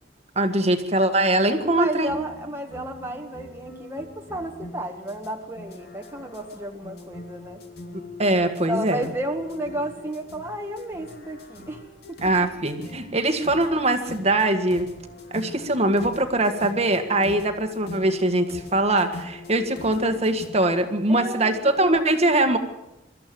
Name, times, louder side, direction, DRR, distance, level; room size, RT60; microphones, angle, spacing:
voice 1, 0.3-2.2 8.2-9.0 12.2-14.9 15.3-22.6, right 1 dB, 35° right, 7 dB, 1.7 m, -22 dB
sound 1, 1.6-20.5, left 2 dB, 60° left, 2.9 m, -42 dB
voice 2, 1.6-7.6 8.7-11.8 12.1-12.2 21.1-22.0, right 1 dB, 15° right, 1 dB, 1.6 m, -32 dB
24.0 x 14.0 x 7.8 m, 0.94 s
head